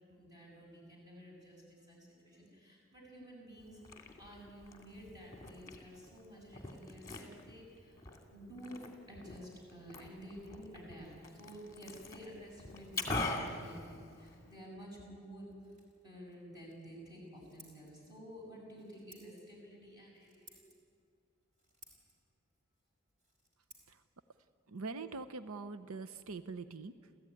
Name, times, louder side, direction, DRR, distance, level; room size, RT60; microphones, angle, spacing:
voice 1, 0.1-8.0 8.3-8.8 9.1-15.5 16.0-20.6, equal, 20° right, -2 dB, 7.3 m, -51 dB
Liquid, 3.6-14.6, left 2 dB, 15° left, 2.5 m, -44 dB
Scissors, 12.4-26.0, right 1 dB, 35° right, 4.5 m, -65 dB
voice 2, 24.7-27.2, right 3 dB, 90° right, 11 dB, 0.8 m, -44 dB
30.0 x 14.5 x 9.8 m, 2.3 s
head